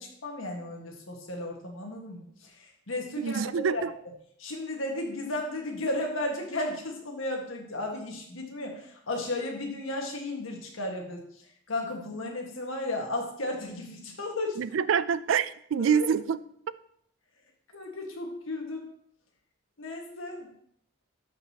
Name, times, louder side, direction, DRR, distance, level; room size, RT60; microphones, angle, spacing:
voice 1, 0.0-3.8 4.4-14.6 15.8-16.1 17.7-18.9 19.8-20.5, left 2 dB, 85° left, 1 dB, 1.7 m, -34 dB
voice 2, 3.2-3.9 14.6-16.4, right 7 dB, 75° right, 16 dB, 0.4 m, -26 dB
12.0 x 5.3 x 2.9 m, 0.66 s
head